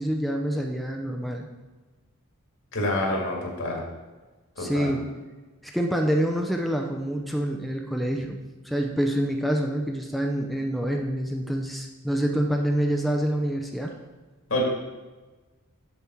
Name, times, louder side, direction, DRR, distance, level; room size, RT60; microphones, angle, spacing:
voice 1, 0.0-1.5 4.6-5.1 5.7-8.4 8.6-13.9, equal, ahead, 2 dB, 0.5 m, -26 dB
voice 2, 2.7-3.8 4.6-4.9 14.5-14.6, left 1 dB, 65° left, -1 dB, 2.1 m, -27 dB
7.1 x 7.1 x 4.4 m, 1.2 s
head